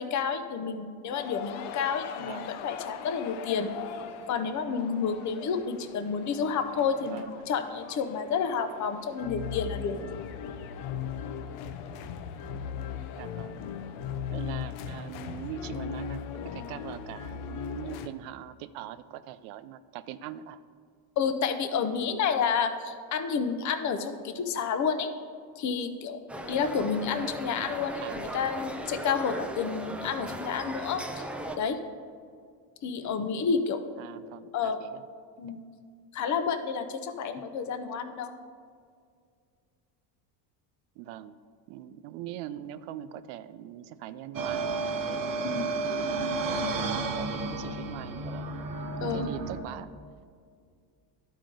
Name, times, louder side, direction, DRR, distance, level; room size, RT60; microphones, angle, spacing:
voice 1, 0.0-3.7 4.3-10.1 21.2-25.1 25.6-26.2 26.5-31.0 31.6-31.8 32.8-33.8 34.5-34.8 35.4-35.6 36.1-38.3 45.4-45.7 46.1-46.4 49.0-49.3, left 6 dB, 35° left, 9 dB, 0.6 m, -30 dB
sound 1, 1.1-18.1, left 7 dB, 75° left, 0.7 m, -39 dB
voice 2, 2.2-2.5 7.1-7.5 13.2-13.6 14.3-20.6 28.0-28.5 34.0-35.0 41.0-41.3 41.7-45.4 46.0-49.9, right 11 dB, 85° right, 13 dB, 0.6 m, -42 dB
sound 2, 26.3-31.6, right 1 dB, 5° right, 0.4 m, -38 dB
sound 3, 44.3-49.6, right 3 dB, 45° right, 0.8 m, -32 dB
11.5 x 4.9 x 3.8 m, 2.2 s
cardioid pair, 110°, 48 cm